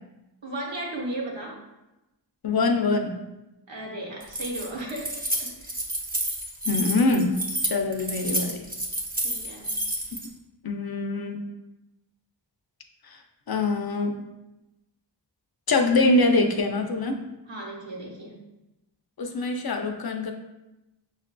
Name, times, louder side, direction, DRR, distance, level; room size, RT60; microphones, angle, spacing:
voice 1, 0.4-1.6 3.7-5.7 9.2-9.8 17.5-18.4, right 1 dB, 85° right, -2 dB, 1.1 m, -35 dB
voice 2, 2.4-3.2 6.7-7.4 7.6-8.7 10.6-11.4 13.1-13.2 13.5-14.2 15.7-17.2 19.2-20.3, left 3 dB, 55° left, 4 dB, 0.5 m, -24 dB
Keys jangling, 4.2-10.3, right 1 dB, 20° right, 0.7 m, -30 dB
6.1 x 2.5 x 2.2 m, 0.97 s
wide cardioid pair, 50°, 44 cm